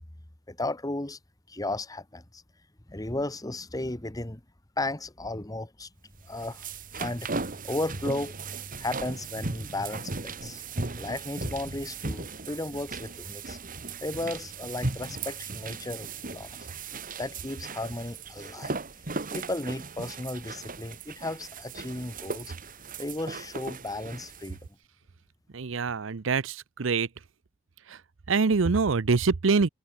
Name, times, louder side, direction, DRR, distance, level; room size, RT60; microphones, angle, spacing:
voice 1, 0.5-1.2 1.5-2.4 2.9-4.4 4.8-5.9 6.3-6.7 7.0-7.3 7.6-8.5 8.8-10.6 11.0-13.6 14.0-16.5 17.2-18.8 19.3-22.5 23.0-24.6, left 2 dB, 20° left, 1.3 m, -34 dB
sound 1, 6.2-24.6, right 3 dB, 45° right, 2.0 m, -37 dB
voice 2, 25.5-27.1 27.9-28.0 28.3-29.7, right 4 dB, 80° right, 0.7 m, -25 dB
head